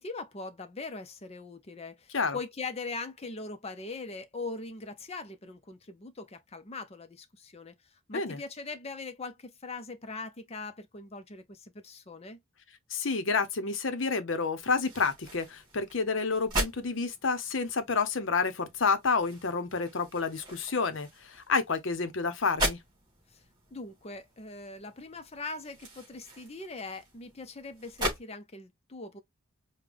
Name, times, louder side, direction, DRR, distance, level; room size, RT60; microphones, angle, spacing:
voice 1, 0.0-12.4 23.3-23.4 23.7-29.2, left 3 dB, 30° left, 0.6 m, -41 dB
voice 2, 12.9-22.8, left 4 dB, 60° left, 0.7 m, -29 dB
sound 1, 14.6-28.2, right 1 dB, 20° right, 2.7 m, -39 dB
5.2 x 2.2 x 3.4 m
head